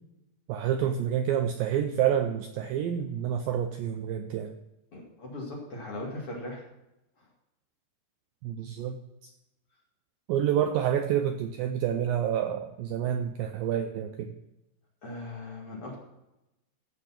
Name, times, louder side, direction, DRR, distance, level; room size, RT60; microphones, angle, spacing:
voice 1, 0.5-4.5 8.4-9.3 10.3-14.4, right 9 dB, 85° right, 6 dB, 2.1 m, -28 dB
voice 2, 4.9-6.6 7.2-7.3 15.0-16.0, left 2 dB, 40° left, -3 dB, 2.6 m, -39 dB
15.5 x 5.1 x 5.9 m, 0.92 s
omnidirectional pair, 4.8 m